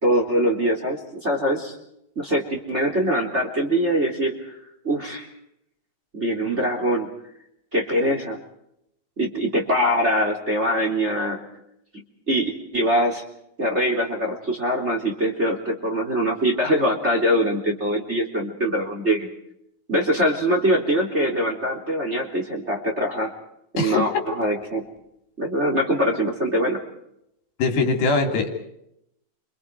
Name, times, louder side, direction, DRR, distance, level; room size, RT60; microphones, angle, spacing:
voice 1, 0.0-1.7 2.1-4.6 4.8-5.3 6.1-7.1 7.7-8.4 9.2-11.4 12.3-13.2 13.6-19.3 19.9-23.3 23.7-24.8 25.4-26.8, equal, 20° right, 1 dB, 3.4 m, -23 dB
voice 2, 23.8-24.1 27.6-28.5, left 3 dB, 75° left, 4 dB, 5.1 m, -21 dB
30.0 x 27.0 x 4.8 m, 0.78 s
omnidirectional pair, 4.4 m